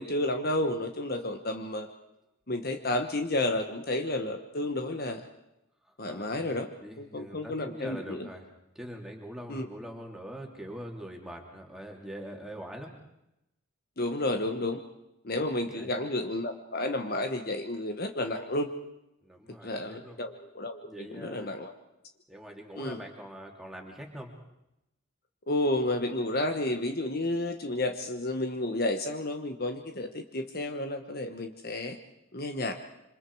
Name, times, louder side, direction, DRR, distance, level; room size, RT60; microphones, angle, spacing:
voice 1, 0.0-1.9 2.5-5.2 6.0-6.7 7.0-8.3 9.5-9.7 14.0-14.8 15.2-18.7 19.5-21.7 22.8-23.0 25.5-32.0 32.3-32.7, left 1 dB, 45° left, 5 dB, 1.2 m, -31 dB
voice 2, 5.9-8.4 8.7-12.9 15.6-15.9 19.2-20.2 20.8-21.5 22.3-24.3, equal, ahead, 0 dB, 3.0 m, -43 dB
27.0 x 26.0 x 4.8 m, 0.88 s
head